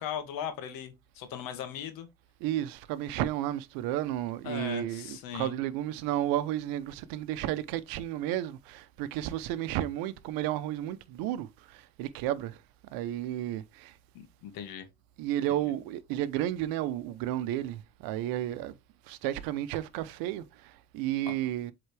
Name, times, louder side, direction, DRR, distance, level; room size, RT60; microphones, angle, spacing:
voice 1, 0.0-2.1 4.4-5.6 14.1-14.9 15.5-15.7 21.2-21.3, left 9 dB, 75° left, 1.7 m, -38 dB
voice 2, 2.4-12.6 12.9-13.9 15.2-18.7 19.1-21.7, right 13 dB, 85° right, 0.8 m, -32 dB
8.0 x 3.9 x 3.3 m
supercardioid pair, 95°, 34 cm